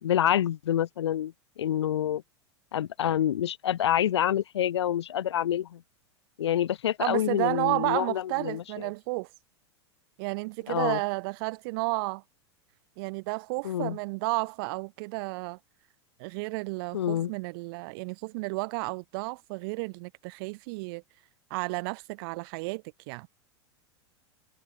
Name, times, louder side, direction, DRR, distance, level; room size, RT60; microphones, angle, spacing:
voice 1, 0.0-2.2 2.7-5.8 6.4-8.6 10.7-11.0 13.6-14.0 16.9-17.3, left 11 dB, 70° left, 3.6 m, -27 dB
voice 2, 7.0-9.3 10.2-12.2 13.0-15.6 16.2-21.0 21.5-23.3, right 27 dB, 55° right, 3.1 m, -32 dB
figure-of-eight pair, 85°, 15 cm